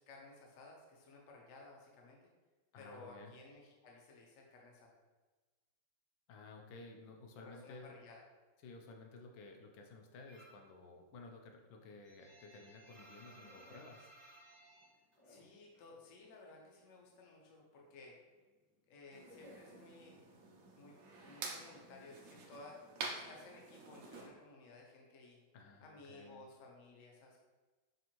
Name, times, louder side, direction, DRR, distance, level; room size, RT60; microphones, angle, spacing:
voice 1, 0.0-2.3 2.8-5.0 7.4-8.2 15.2-18.2 18.9-20.2 20.7-22.8 23.2-25.4 25.8-27.4, left 2 dB, 60° left, -1 dB, 0.8 m, -57 dB
voice 2, 2.7-3.3 6.3-7.9 8.6-14.1 25.5-26.4, left 3 dB, 80° left, 2 dB, 1.3 m, -54 dB
sound 1, 10.3-10.7 11.1-15.9 16.2-17.3 17.5-20.4, equal, 10° left, 0.5 m, -60 dB
sound 2, 19.1-24.3, right 3 dB, 75° right, 0.8 m, -48 dB
5.4 x 2.6 x 2.9 m, 1.3 s
omnidirectional pair, 2.2 m